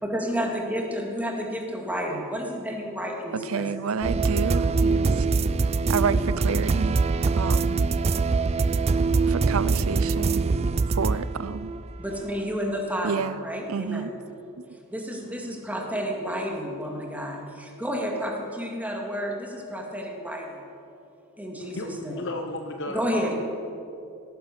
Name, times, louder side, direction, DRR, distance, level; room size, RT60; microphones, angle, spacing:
voice 1, 0.0-3.6 12.0-14.0 14.9-17.4 17.8-20.4 21.4-22.2 22.9-23.3, equal, 10° right, 0 dB, 2.1 m, -30 dB
voice 2, 3.3-5.3 5.9-7.0 7.3-7.8 9.3-10.5 10.9-11.7 13.0-13.4 13.7-14.1, right 5 dB, 80° right, 16 dB, 0.5 m, -29 dB
Atmospheric eerie song, 4.0-12.1, right 4 dB, 30° right, 0.4 m, -23 dB
voice 3, 15.2-15.6 21.6-23.3, left 2 dB, 60° left, 4 dB, 1.0 m, -35 dB
17.5 x 10.0 x 6.7 m, 2.6 s
head